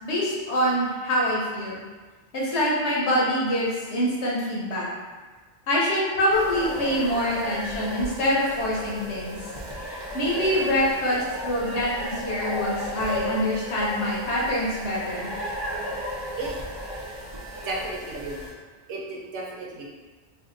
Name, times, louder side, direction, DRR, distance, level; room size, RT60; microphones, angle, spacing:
voice 1, 0.0-1.8 2.3-4.9 5.7-9.4 9.9-15.3, equal, 70° left, -5 dB, 1.0 m, -25 dB
sound 1, 6.3-18.5, equal, 40° right, 0.3 m, -34 dB
voice 2, 17.6-18.4 18.9-19.9, right 2 dB, 75° right, -3 dB, 0.9 m, -33 dB
2.7 x 2.4 x 3.7 m, 1.4 s
omnidirectional pair, 1.2 m